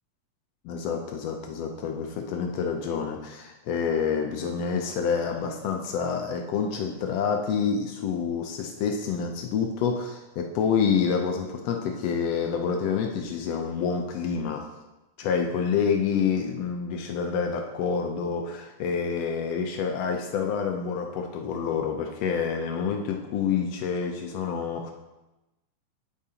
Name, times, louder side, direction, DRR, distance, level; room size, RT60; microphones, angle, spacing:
voice 1, 0.6-14.6 15.2-24.9, left 6 dB, 80° left, 3 dB, 1.4 m, -28 dB
9.5 x 8.6 x 2.9 m, 1.0 s
omnidirectional pair, 3.8 m